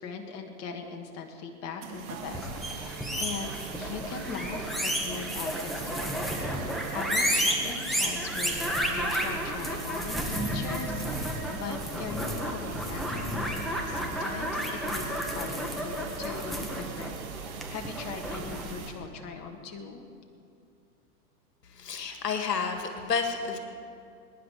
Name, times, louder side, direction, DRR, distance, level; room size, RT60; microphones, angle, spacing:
voice 1, 0.0-13.4 13.9-15.0 15.3-20.1, left 5 dB, 35° left, 3 dB, 1.6 m, -40 dB
sound 1, 1.8-18.9, right 6 dB, 60° right, 2.2 m, -41 dB
sound 2, 2.2-18.7, equal, ahead, 1.7 m, -32 dB
voice 2, 21.7-23.6, left 5 dB, 80° left, 5 dB, 1.9 m, -30 dB
22.0 x 10.5 x 5.0 m, 2.5 s
hypercardioid pair, 105°, 48 cm